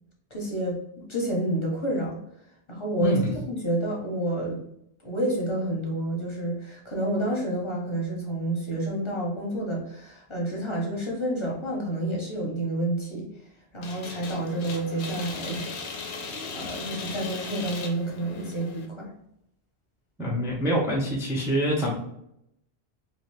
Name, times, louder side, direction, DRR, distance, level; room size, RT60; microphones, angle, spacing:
voice 1, 0.3-0.8 1.1-2.2 2.7-3.2 3.5-4.6 5.0-13.3 13.7-15.7 16.0-19.1, right 1 dB, 30° left, -2 dB, 0.8 m, -29 dB
voice 2, 3.0-3.3 20.2-21.9, right 1 dB, 5° right, -2 dB, 0.4 m, -25 dB
sound 1, 13.8-18.9, left 4 dB, 80° left, 0.9 m, -37 dB
2.7 x 2.7 x 3.2 m, 0.77 s
omnidirectional pair, 1.1 m